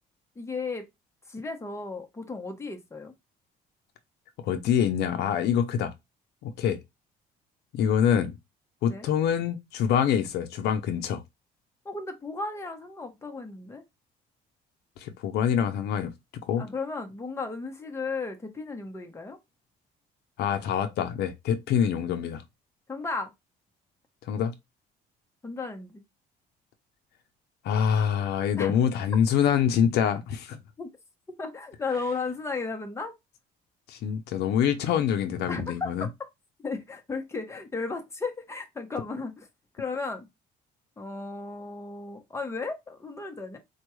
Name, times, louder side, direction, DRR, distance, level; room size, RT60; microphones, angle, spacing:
voice 1, 0.4-0.9 1.3-3.1 8.9-9.1 11.8-13.8 16.6-19.4 22.9-23.3 25.4-26.0 28.6-28.7 30.8-30.9 31.4-33.1 35.5-35.9 36.6-39.5 39.7-40.3 41.0-43.6, left 4 dB, 15° left, 0.9 m, -34 dB
voice 2, 4.4-5.9 6.4-6.8 7.7-8.3 8.8-11.2 15.0-16.1 16.4-16.7 20.4-22.4 24.3-24.5 27.6-30.6 33.9-36.1, left 8 dB, 75° left, 0.6 m, -25 dB
4.4 x 2.3 x 3.1 m
cardioid pair, 110°, 17 cm